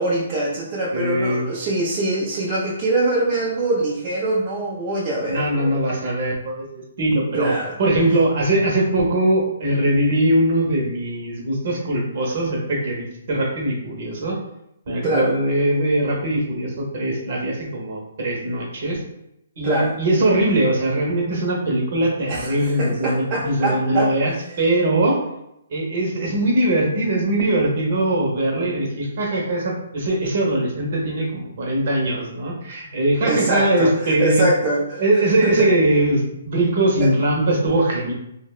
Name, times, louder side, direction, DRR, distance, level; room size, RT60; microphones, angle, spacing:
voice 1, 0.0-5.8 7.3-7.8 15.0-15.3 19.6-20.0 22.3-24.1 33.2-35.0 35.4-35.7 37.0-37.1, right 2 dB, 25° right, -6 dB, 0.3 m, -23 dB
voice 2, 0.9-1.5 5.3-6.7 7.0-7.5 7.8-14.4 14.9-19.0 19.6-25.2 25.7-34.4 35.0-38.1, right 1 dB, 50° right, -1 dB, 0.7 m, -21 dB
2.6 x 2.1 x 2.3 m, 0.82 s
hypercardioid pair, 170°, 0 cm